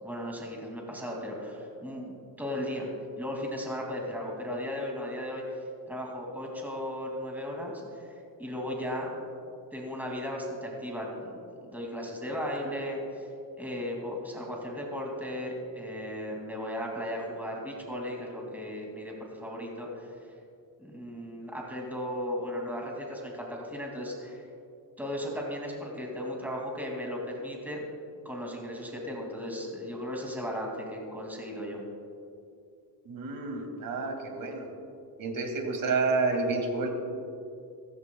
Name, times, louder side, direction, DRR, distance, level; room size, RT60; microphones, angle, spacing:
voice 1, 0.0-2.9 3.2-5.4 5.9-8.1 8.4-9.1 9.7-13.3 13.6-20.1 20.8-24.5 25.0-27.8 28.2-31.8, equal, 5° right, -1 dB, 2.4 m, -36 dB
voice 2, 33.1-34.7 35.2-36.9, right 3 dB, 55° right, 3 dB, 2.2 m, -29 dB
16.0 x 15.5 x 2.3 m, 2.4 s
cardioid pair, 115°, 41 cm